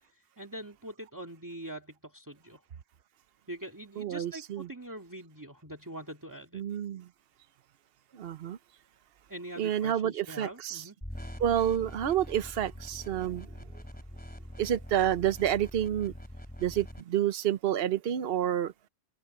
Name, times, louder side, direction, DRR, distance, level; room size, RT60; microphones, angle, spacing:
voice 1, 0.1-2.6 3.5-6.6 9.3-11.0, right 1 dB, 15° right, 2.2 m, -43 dB
voice 2, 4.0-4.7 6.5-7.1 8.1-8.6 9.6-10.8 11.4-13.8 14.6-16.1 16.6-18.7, right 10 dB, 70° right, 1.0 m, -29 dB
sound 1, 11.0-17.0, equal, 10° left, 2.7 m, -44 dB
omnidirectional pair, 1.1 m